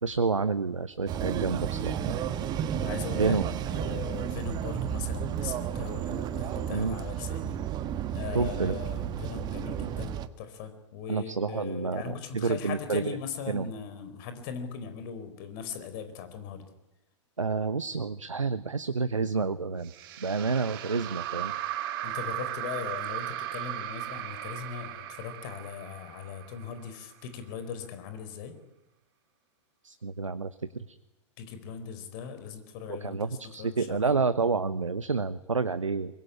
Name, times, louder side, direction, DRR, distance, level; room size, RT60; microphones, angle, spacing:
voice 1, 0.0-2.2 3.2-3.4 6.7-7.0 8.3-8.8 11.1-13.2 13.5-13.7 17.4-19.9 20.2-21.5 29.8-30.9 32.9-36.2, right 4 dB, 80° right, 12 dB, 1.0 m, -29 dB
sound 1, 1.1-10.3, right 9 dB, 25° right, 1.4 m, -32 dB
voice 2, 2.8-3.4 3.7-7.6 8.1-16.6 22.0-28.5 31.4-34.2, left 7 dB, 40° left, 9 dB, 4.8 m, -39 dB
sound 2, 19.8-27.1, right 13 dB, 45° right, 2.2 m, -37 dB
23.5 x 22.5 x 10.0 m, 0.90 s
figure-of-eight pair, 105°, 16 cm